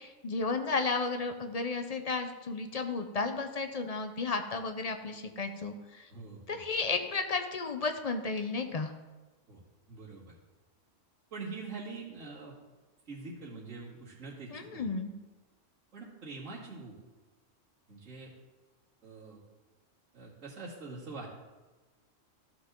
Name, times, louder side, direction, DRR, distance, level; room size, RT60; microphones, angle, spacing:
voice 1, 0.0-6.1 6.5-8.9 14.5-15.1, left 4 dB, 40° left, 6 dB, 0.6 m, -33 dB
voice 2, 6.1-6.6 9.5-9.6 9.9-10.3 11.3-12.5 13.1-14.9 15.9-17.0 17.9-18.3 19.0-19.4 20.1-21.3, right 3 dB, 75° right, -7 dB, 2.6 m, -44 dB
14.0 x 6.0 x 3.7 m, 1.2 s
omnidirectional pair, 1.3 m